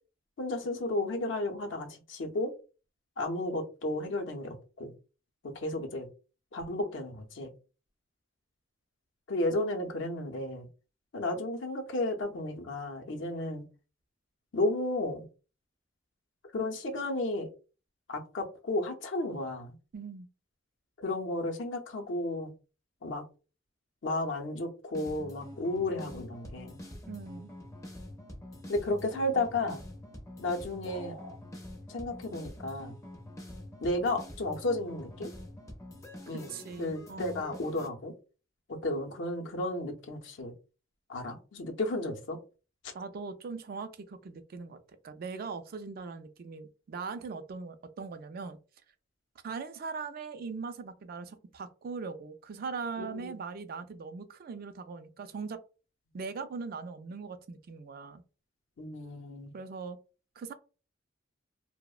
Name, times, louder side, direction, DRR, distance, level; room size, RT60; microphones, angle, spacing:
voice 1, 0.4-2.5 3.2-4.9 5.4-6.1 6.5-7.5 9.3-10.7 11.1-13.6 14.5-15.2 16.5-17.5 18.1-19.7 21.0-22.5 23.0-23.2 24.0-26.8 28.7-29.9 30.4-31.2 31.9-33.0 33.8-35.3 36.3-36.5 36.8-38.1 38.7-40.5 41.1-42.4 53.0-53.4 58.8-59.5, left 2 dB, 75° left, 0.6 m, -33 dB
voice 2, 19.9-20.3 27.1-27.5 36.3-37.5 42.9-48.6 49.4-55.6 56.1-58.2 59.5-60.0 60.4-60.5, right 4 dB, 50° right, 0.3 m, -40 dB
sound 1, 24.9-37.9, left 1 dB, 15° left, 0.4 m, -46 dB
sound 2, 30.8-31.4, equal, 65° right, 0.7 m, -46 dB
2.7 x 2.0 x 2.3 m
head